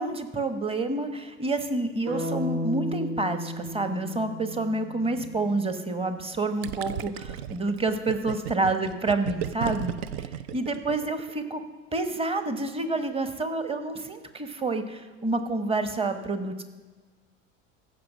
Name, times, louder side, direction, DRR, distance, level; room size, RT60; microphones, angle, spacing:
voice 1, 0.0-11.6 11.9-16.6, right 2 dB, 15° right, 9 dB, 1.1 m, -28 dB
sound 1, 2.1-6.1, equal, 75° right, 2.8 m, -34 dB
Gurgling, 6.6-11.3, right 9 dB, 60° right, 0.7 m, -34 dB
15.0 x 5.3 x 6.0 m, 1.4 s
figure-of-eight pair, 75°, 37 cm